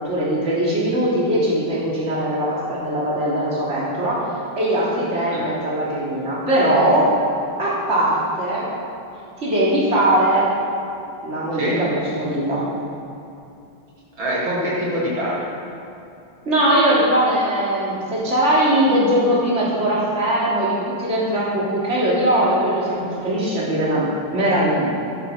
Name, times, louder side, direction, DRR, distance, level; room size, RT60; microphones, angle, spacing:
voice 1, 0.0-4.2 4.6-7.1 7.6-8.7 9.4-10.4 11.2-12.6 16.5-24.9, right 1 dB, 30° right, -7 dB, 3.6 m, -20 dB
voice 2, 14.2-15.5 24.9-25.0, right 1 dB, 65° right, -7 dB, 3.6 m, -24 dB
13.5 x 11.5 x 6.5 m, 2.7 s
omnidirectional pair, 2.3 m